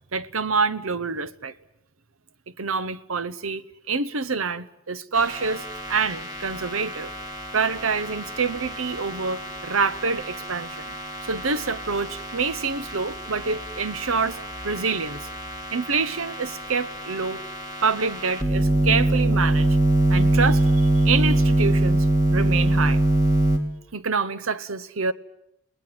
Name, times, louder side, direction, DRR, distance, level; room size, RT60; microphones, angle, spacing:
voice 1, 0.1-1.5 2.6-7.1 7.5-10.9 11.3-14.4 14.6-15.3 15.7-17.4 17.8-19.8 20.1-23.0 23.9-25.1, right 4 dB, 70° right, 1.0 m, -26 dB
sound 1, 5.1-23.6, right 1 dB, 15° right, 2.8 m, -24 dB
29.5 x 19.5 x 7.8 m
head